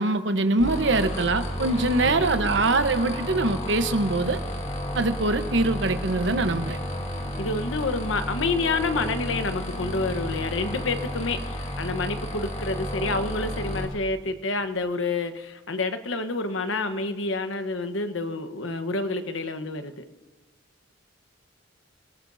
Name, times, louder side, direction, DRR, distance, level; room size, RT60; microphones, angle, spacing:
voice 1, 0.0-4.4 5.0-6.8, right 2 dB, 65° right, 9 dB, 1.0 m, -23 dB
sound 1, 0.6-13.9, equal, 35° left, 1.9 m, -32 dB
voice 2, 2.0-2.6 7.4-20.0, left 3 dB, 90° left, 9 dB, 1.1 m, -29 dB
29.0 x 18.0 x 2.7 m, 1.2 s
head